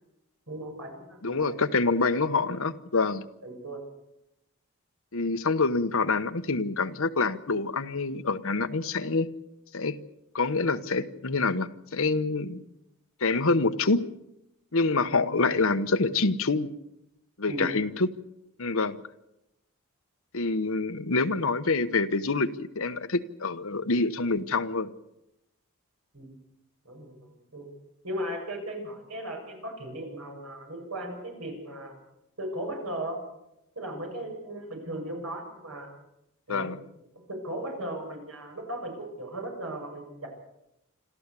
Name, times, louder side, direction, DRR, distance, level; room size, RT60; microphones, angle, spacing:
voice 1, 0.5-1.6 3.4-3.8 17.5-17.6 26.1-26.4 26.8-27.2 27.5-27.7 28.0-31.9 32.4-33.2 33.8-35.9 36.5-36.7 37.3-40.3, right 1 dB, 85° right, 1 dB, 7.4 m, -37 dB
voice 2, 1.2-3.2 5.1-9.3 9.7-10.0 10.3-12.6 13.2-14.0 14.7-16.7 17.4-18.1 18.6-19.0 20.3-24.9 36.5-36.8, left 3 dB, 70° left, 9 dB, 1.1 m, -26 dB
26.5 x 13.5 x 8.3 m, 0.87 s
head